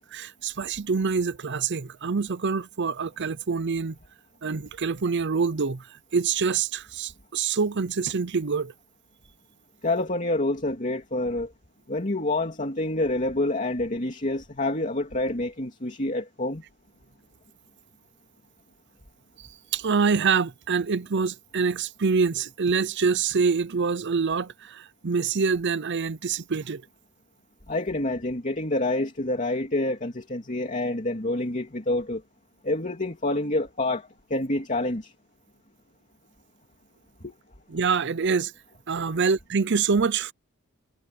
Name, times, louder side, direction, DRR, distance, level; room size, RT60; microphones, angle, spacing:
voice 1, 0.1-4.0 4.4-5.9 6.1-8.7 19.4-26.8 37.7-38.5 38.9-40.3, right 5 dB, 55° right, 0.7 m, -25 dB
voice 2, 9.8-11.5 11.9-16.6 27.7-32.2 32.6-35.1 37.2-37.3, left 2 dB, 35° left, 2.8 m, -27 dB
head